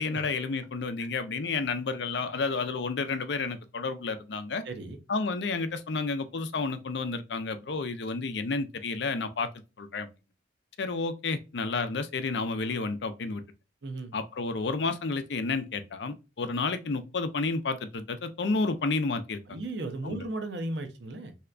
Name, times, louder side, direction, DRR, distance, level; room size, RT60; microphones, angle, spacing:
voice 1, 0.0-4.6 5.1-9.5 9.8-10.1 10.8-13.4 14.1-19.6 20.0-20.2, left 4 dB, 65° left, 0.5 m, -31 dB
voice 2, 4.6-5.0 13.8-14.1 19.5-21.3, right 2 dB, 65° right, 0.7 m, -35 dB
3.3 x 2.8 x 2.4 m
head